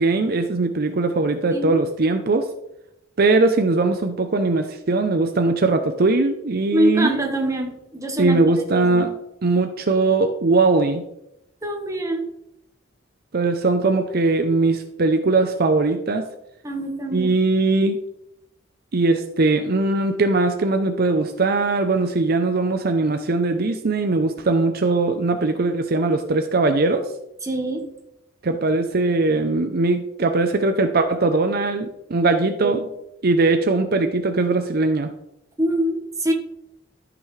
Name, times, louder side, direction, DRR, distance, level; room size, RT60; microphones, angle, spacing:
voice 1, 0.0-2.5 3.2-7.1 8.2-9.1 9.4-11.0 13.3-16.3 17.1-18.0 18.9-27.1 28.4-32.8 33.2-35.1, right 3 dB, 55° right, 6 dB, 0.6 m, -20 dB
voice 2, 6.7-8.4 8.7-9.1 11.6-12.3 16.6-17.3 27.4-27.9 32.6-32.9 35.6-36.3, right 1 dB, 15° right, 2 dB, 1.4 m, -24 dB
13.5 x 6.0 x 3.3 m, 0.85 s
head